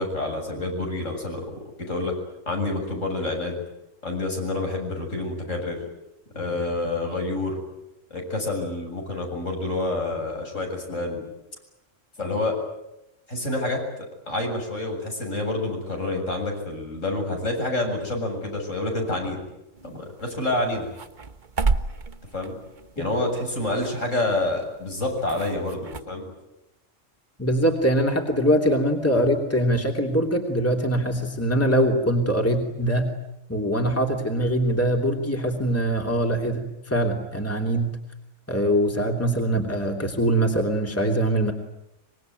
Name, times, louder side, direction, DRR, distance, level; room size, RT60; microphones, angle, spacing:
voice 1, 0.0-1.5 1.9-2.1 2.5-3.6 4.0-5.8 6.3-7.6 8.1-11.3 12.2-12.6 13.3-13.8 14.3-19.4 19.8-20.9 22.3-22.5 23.0-26.3, left 2 dB, 75° left, 2 dB, 7.8 m, -28 dB
sound 1, 19.7-26.0, right 4 dB, 40° right, 1.3 m, -33 dB
voice 2, 27.4-33.2 33.5-38.0 38.5-41.5, right 1 dB, 10° left, 2 dB, 3.2 m, -23 dB
25.5 x 23.0 x 9.4 m, 0.87 s
omnidirectional pair, 1.3 m